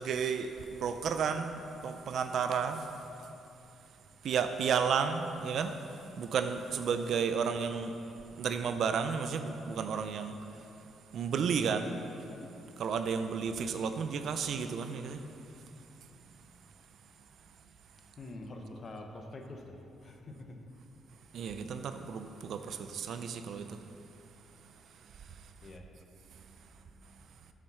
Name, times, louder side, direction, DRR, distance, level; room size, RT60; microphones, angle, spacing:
voice 1, 0.0-3.3 4.2-8.0 8.3-10.7 11.1-12.0 12.8-15.2 16.2-16.4 21.3-23.8 24.6-25.7 26.3-26.6 27.1-27.2, right 6 dB, 65° right, 9 dB, 0.5 m, -33 dB
voice 2, 18.2-20.6 25.6-25.9, left 2 dB, 40° left, 3 dB, 1.1 m, -45 dB
7.6 x 7.6 x 5.6 m, 2.8 s
cardioid pair, 90°, 0 cm